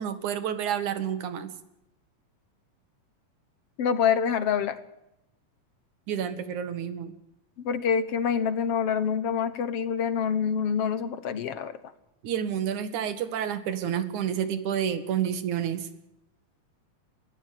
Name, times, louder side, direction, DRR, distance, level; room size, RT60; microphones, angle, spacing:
voice 1, 0.0-1.5 6.1-7.1 12.2-15.9, right 9 dB, 70° right, 12 dB, 3.1 m, -29 dB
voice 2, 3.8-4.8 7.6-11.8, left 7 dB, 60° left, 13 dB, 1.8 m, -26 dB
21.5 x 15.0 x 9.2 m, 0.86 s
omnidirectional pair, 3.7 m